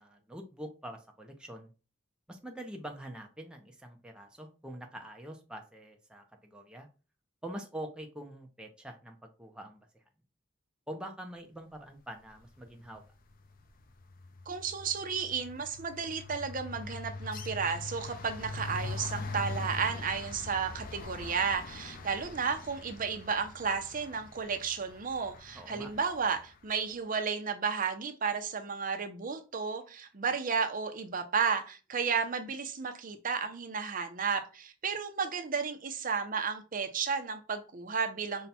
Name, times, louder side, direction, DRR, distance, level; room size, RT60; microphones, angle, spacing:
voice 1, 0.0-1.7 2.3-6.9 7.4-10.0 10.9-13.1 25.5-25.9, right 1 dB, 5° right, 2 dB, 0.5 m, -45 dB
sound 1, 12.7-13.0 13.3-26.4, left 3 dB, 45° left, 0.5 m, -43 dB
voice 2, 14.5-38.5, right 5 dB, 45° right, 6 dB, 0.7 m, -33 dB
5.5 x 2.3 x 4.1 m, 0.34 s
head